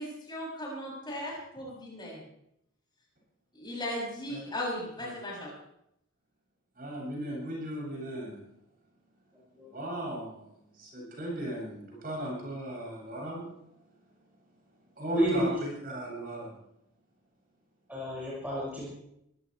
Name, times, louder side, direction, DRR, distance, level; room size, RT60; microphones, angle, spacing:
voice 1, 0.0-2.2 3.5-5.5, left 1 dB, 20° left, -4 dB, 7.0 m, -37 dB
voice 2, 6.7-8.4 9.7-10.5 10.7-13.5 14.9-16.5, right 1 dB, 45° right, -3 dB, 7.7 m, -36 dB
voice 3, 15.1-15.5 17.9-18.9, equal, 10° right, -8 dB, 5.8 m, -30 dB
23.0 x 16.0 x 3.3 m, 0.78 s
head